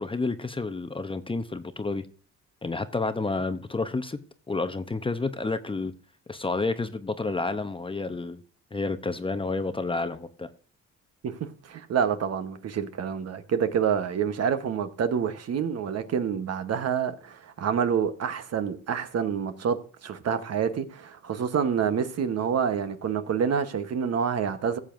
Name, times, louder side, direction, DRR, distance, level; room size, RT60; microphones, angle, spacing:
voice 1, 0.0-2.1 2.6-4.2 4.5-5.9 6.3-8.4 8.7-10.5, left 3 dB, 15° left, 0.7 m, -30 dB
voice 2, 11.6-24.8, right 7 dB, 55° right, 1.1 m, -27 dB
16.5 x 7.4 x 2.6 m
cardioid pair, 90°, 30 cm